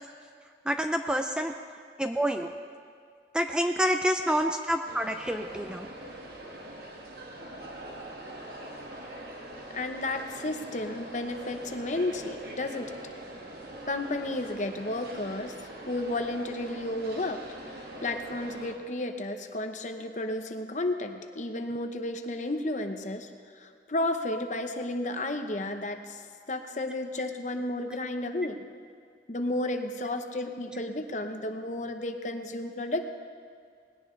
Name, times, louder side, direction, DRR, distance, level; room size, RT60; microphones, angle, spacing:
voice 1, 0.7-1.5 2.0-2.5 3.3-5.9, equal, 5° right, 5 dB, 0.4 m, -27 dB
sound 1, 4.9-18.8, right 1 dB, 60° right, 1.7 m, -43 dB
voice 2, 9.7-12.9 13.9-15.5 15.9-17.4 17.7-26.2 26.5-28.6 29.3-33.1, left 2 dB, 45° left, 6 dB, 0.8 m, -32 dB
19.5 x 17.0 x 3.2 m, 2.1 s
head